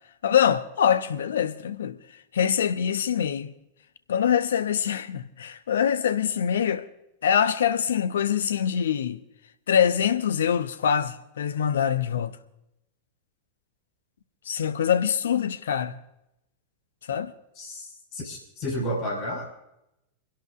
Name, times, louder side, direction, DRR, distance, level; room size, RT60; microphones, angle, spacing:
voice 1, 0.2-2.0 2.3-3.5 4.1-6.9 7.2-9.2 9.7-12.4 14.5-16.0 17.1-17.3, left 8 dB, 65° left, 0.8 m, -24 dB
voice 2, 17.5-19.5, equal, 40° left, 5.5 m, -32 dB
30.0 x 11.5 x 2.5 m
figure-of-eight pair, 90°, 0 cm